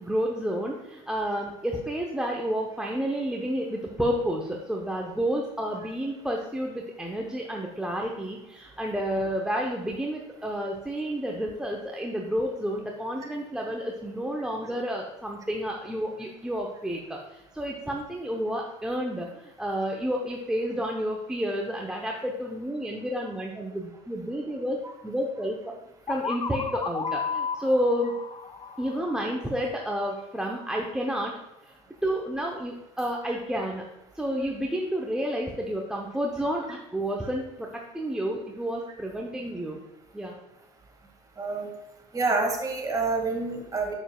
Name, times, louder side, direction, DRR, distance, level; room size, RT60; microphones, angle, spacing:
voice 1, 0.0-24.8 25.0-25.7 26.1-28.1 28.8-31.3 31.6-31.7 32.0-33.8 34.1-39.8 40.1-40.4, equal, 5° right, -1 dB, 0.8 m, -30 dB
sound 1, 26.1-29.8, left 6 dB, 25° left, 0.5 m, -33 dB
voice 2, 41.4-41.7 42.1-43.9, right 3 dB, 25° right, 1 dB, 2.0 m, -27 dB
7.2 x 6.9 x 2.3 m, 0.94 s
supercardioid pair, 85°, 14 cm